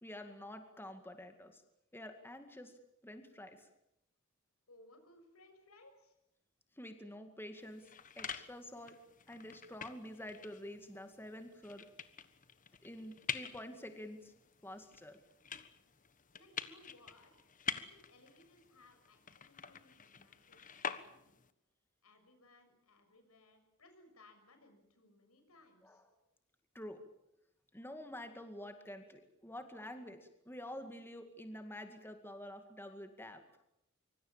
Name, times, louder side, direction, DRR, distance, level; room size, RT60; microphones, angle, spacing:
voice 1, 0.0-1.6 1.9-3.7 6.8-7.9 8.2-9.0 9.3-11.9 12.8-14.3 14.6-15.2 25.8-26.0 26.7-27.0 27.7-30.2 30.4-33.4, left 1 dB, 10° left, 6 dB, 2.1 m, -48 dB
voice 2, 4.7-6.2 16.3-17.5 17.9-21.4 22.0-26.0, left 2 dB, 85° left, 7 dB, 6.7 m, -63 dB
sound 1, 7.6-21.5, left 7 dB, 40° left, 1.4 m, -47 dB
25.0 x 24.5 x 7.4 m, 0.82 s
head